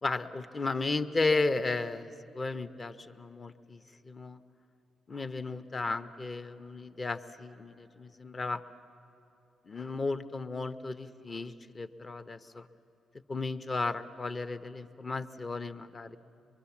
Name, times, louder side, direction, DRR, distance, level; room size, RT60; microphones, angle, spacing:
voice 1, 0.0-4.4 5.1-8.6 9.7-12.7 13.3-16.2, left 3 dB, 35° left, 10 dB, 0.8 m, -34 dB
23.5 x 23.0 x 7.2 m, 2.8 s
cardioid pair, 75°, 0 cm